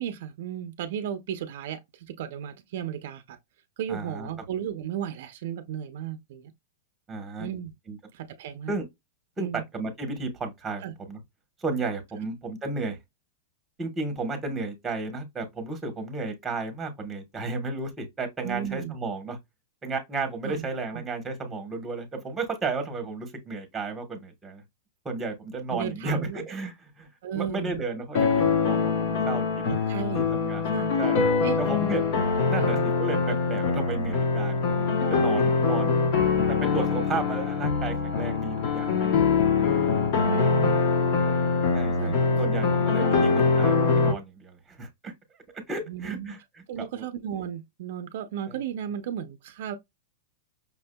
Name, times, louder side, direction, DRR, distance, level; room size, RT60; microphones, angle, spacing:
voice 1, 0.0-3.4 3.8-6.5 7.4-7.7 8.1-8.8 9.4-9.6 10.8-10.9 18.4-19.0 20.4-20.7 20.9-21.0 25.7-26.5 27.2-27.8 29.7-30.3 30.7-30.9 31.4-31.6 32.6-32.9 35.2-35.6 38.8-39.0 40.3-40.9 42.0-42.4 43.2-43.3 45.9-46.3 46.7-49.8, right 10 dB, 60° right, 0.5 m, -34 dB
voice 2, 3.9-4.3 7.1-7.5 7.9-8.0 8.7-8.8 9.4-9.5 9.7-11.2 11.6-13.0 13.8-19.4 19.8-24.6 25.0-27.1 27.3-29.4 30.1-30.6 31.0-31.2 31.6-32.0 32.5-38.9 39.6-39.7 41.2-41.3 41.7-45.1 45.7-47.0 48.5-48.6, right 3 dB, 10° right, 1.1 m, -33 dB
sound 1, 28.1-44.1, left 4 dB, 45° left, 0.9 m, -23 dB
5.6 x 2.6 x 2.2 m
supercardioid pair, 155°, 0 cm